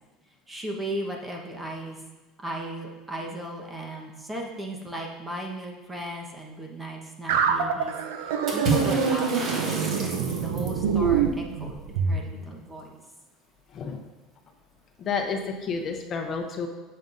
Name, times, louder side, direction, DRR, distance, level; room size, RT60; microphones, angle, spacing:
voice 1, 0.5-2.0 2.4-7.9 8.2-11.8 12.0-13.0, right 1 dB, 15° right, 0 dB, 1.3 m, -36 dB
sound 1, 7.3-12.2, right 7 dB, 90° right, 0.7 m, -25 dB
Water / Splash splatter, 8.5-10.8, right 2 dB, 45° right, 2.1 m, -30 dB
voice 2, 13.7-14.0 15.0-16.7, left 5 dB, 40° left, 4 dB, 0.8 m, -30 dB
9.1 x 7.6 x 2.7 m, 1.2 s
supercardioid pair, 120°, 0 cm